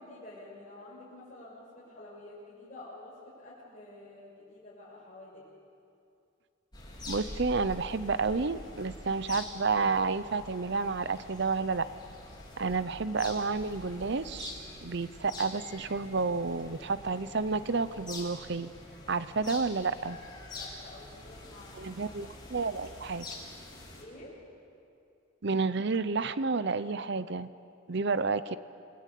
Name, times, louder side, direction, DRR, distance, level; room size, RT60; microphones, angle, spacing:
voice 1, 0.0-5.4 20.5-22.2 22.6-22.8 24.0-24.3 28.1-28.3, left 2 dB, 40° left, -8 dB, 6.5 m, -49 dB
sound 1, 6.7-24.0, left 2 dB, 25° left, 4.7 m, -46 dB
voice 2, 7.1-11.9 12.6-14.5 14.8-18.7 19.1-20.2 21.8-23.3 25.4-27.5 27.9-28.6, right 4 dB, 60° right, 14 dB, 0.7 m, -30 dB
28.5 x 21.5 x 8.5 m, 2.5 s
head